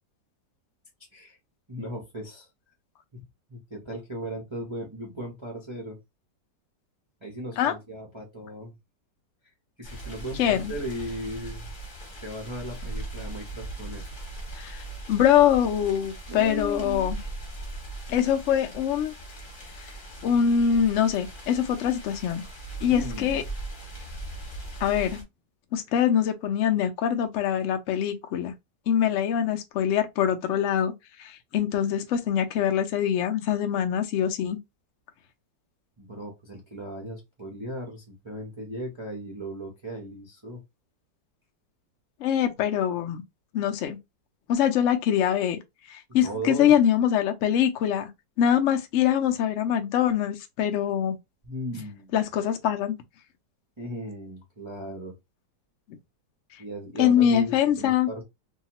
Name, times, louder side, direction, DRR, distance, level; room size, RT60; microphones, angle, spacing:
voice 1, 1.7-2.5 3.1-3.2 3.5-6.0 7.2-8.7 9.8-11.7 12.2-14.1 16.3-17.1 22.9-23.4 36.0-40.6 46.2-46.7 51.4-52.1 53.8-55.1 56.6-58.2, equal, 40° right, 0.4 m, -37 dB
sound 1, 9.8-25.2, right 2 dB, 35° left, 1.0 m, -39 dB
voice 2, 10.4-10.7 14.6-14.8 15.1-17.2 18.1-19.1 20.2-22.4 22.8-23.4 24.8-25.2 25.7-28.5 28.9-30.9 31.2-34.6 42.2-43.2 43.5-44.0 44.5-45.6 45.9-48.1 48.4-51.2 52.1-53.0 57.0-58.1, left 9 dB, 75° left, 0.7 m, -24 dB
2.8 x 2.3 x 2.9 m
omnidirectional pair, 1.9 m